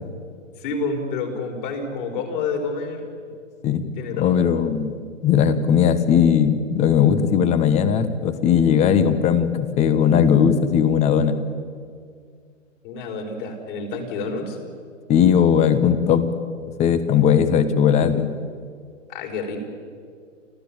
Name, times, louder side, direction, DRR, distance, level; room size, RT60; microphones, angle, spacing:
voice 1, 0.6-3.1 4.0-4.3 12.8-14.6 19.1-19.6, left 4 dB, 40° left, 4 dB, 5.0 m, -28 dB
voice 2, 3.6-11.4 15.1-16.3 16.8-18.3, left 8 dB, 15° left, 12 dB, 1.2 m, -18 dB
30.0 x 14.0 x 8.9 m, 2.1 s
figure-of-eight pair, 125°, 38 cm